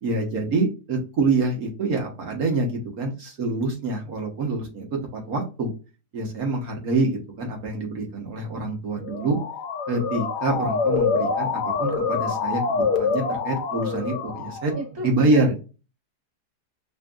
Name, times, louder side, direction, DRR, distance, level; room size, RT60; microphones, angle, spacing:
voice 1, 0.0-4.9 5.1-5.7 6.1-9.4 9.9-14.7 15.0-15.6, right 2 dB, 65° right, 1 dB, 1.6 m, -26 dB
Motor vehicle (road) / Siren, 9.0-14.9, left 5 dB, 85° left, 1.4 m, -26 dB
voice 2, 14.7-15.6, right 1 dB, 15° right, 0 dB, 1.2 m, -35 dB
5.6 x 2.7 x 2.4 m, 0.31 s
omnidirectional pair, 1.7 m